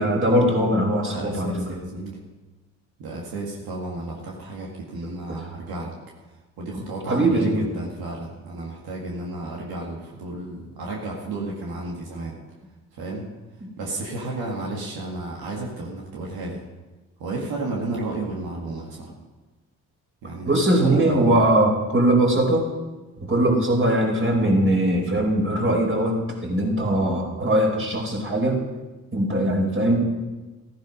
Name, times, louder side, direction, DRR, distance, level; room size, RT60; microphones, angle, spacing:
voice 1, 0.0-1.7 5.3-5.5 7.1-7.7 20.5-22.7 23.2-28.6 29.1-30.0, right 1 dB, 35° right, 0 dB, 4.6 m, -21 dB
voice 2, 1.0-2.2 3.0-5.9 6.6-12.4 12.9-13.3 13.8-16.6 17.2-19.1 20.2-20.5 20.8-21.4, right 2 dB, 75° right, -2 dB, 2.2 m, -32 dB
15.0 x 10.5 x 5.4 m, 1.2 s
supercardioid pair, 50°, 37 cm